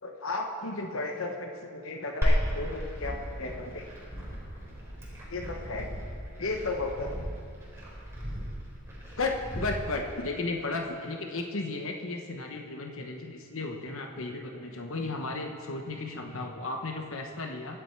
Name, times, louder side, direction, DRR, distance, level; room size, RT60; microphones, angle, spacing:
voice 1, 0.0-3.9 5.3-5.9 6.4-7.2 9.2-17.8, left 3 dB, 65° left, 3 dB, 1.1 m, -34 dB
Glass, 2.2-10.2, equal, 15° right, 4.1 m, -33 dB
23.5 x 9.0 x 4.6 m, 2.4 s
head